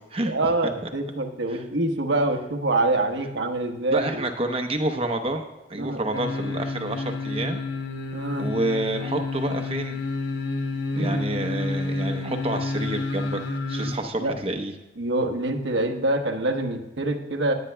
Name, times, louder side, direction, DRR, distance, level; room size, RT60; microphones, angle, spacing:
voice 1, 0.3-4.3 5.8-6.0 8.1-8.5 10.9-11.2 14.2-14.3 15.0-17.5, right 2 dB, 75° right, 5 dB, 1.1 m, -25 dB
voice 2, 3.9-5.4 5.7-7.6 8.4-10.0 11.0-13.4 13.7-14.7, right 1 dB, 30° right, 6 dB, 0.8 m, -28 dB
sound 1, 6.1-14.0 14.3-14.4, left 3 dB, 65° left, 1.1 m, -29 dB
18.5 x 8.9 x 2.2 m, 1.0 s
head